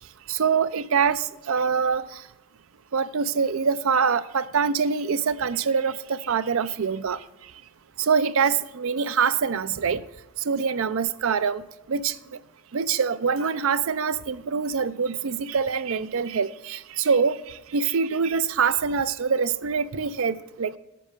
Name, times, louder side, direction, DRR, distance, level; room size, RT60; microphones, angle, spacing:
voice 1, 0.3-2.1 2.9-7.2 8.0-10.0 10.5-11.6 11.9-12.2 12.7-20.8, right 6 dB, 65° right, 14 dB, 0.5 m, -24 dB
8.3 x 6.4 x 6.7 m, 0.93 s
head